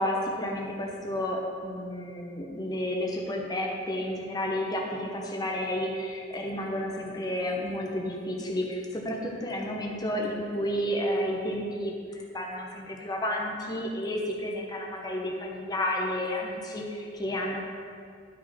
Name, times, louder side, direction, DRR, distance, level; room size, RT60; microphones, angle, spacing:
voice 1, 0.0-17.6, left 1 dB, 20° left, 0 dB, 1.0 m, -31 dB
11.0 x 5.0 x 4.3 m, 2.3 s
head